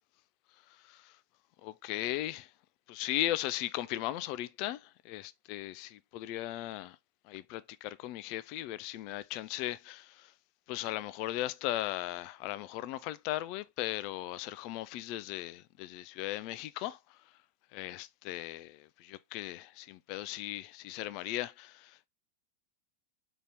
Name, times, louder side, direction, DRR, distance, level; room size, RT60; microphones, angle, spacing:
voice 1, 1.6-2.5 2.9-7.0 7.3-10.3 10.7-17.0 17.7-22.1, left 15 dB, 45° left, 0.3 m, -37 dB
3.9 x 2.9 x 3.3 m
figure-of-eight pair, 90°, 0 cm